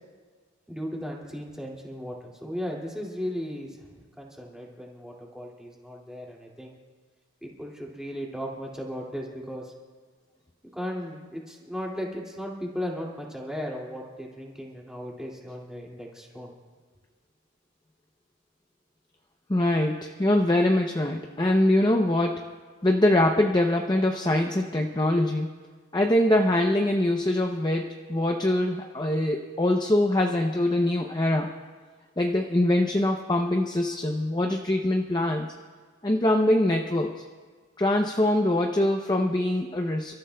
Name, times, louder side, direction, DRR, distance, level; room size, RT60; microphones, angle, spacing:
voice 1, 0.7-6.8 7.4-9.7 10.7-16.5, equal, 5° right, -3 dB, 2.3 m, -36 dB
voice 2, 19.5-22.5 22.8-25.5 25.9-31.5 32.2-35.5 36.0-37.2 37.8-40.1, left 1 dB, 20° left, 2 dB, 0.6 m, -23 dB
30.0 x 14.0 x 2.3 m, 1.5 s
head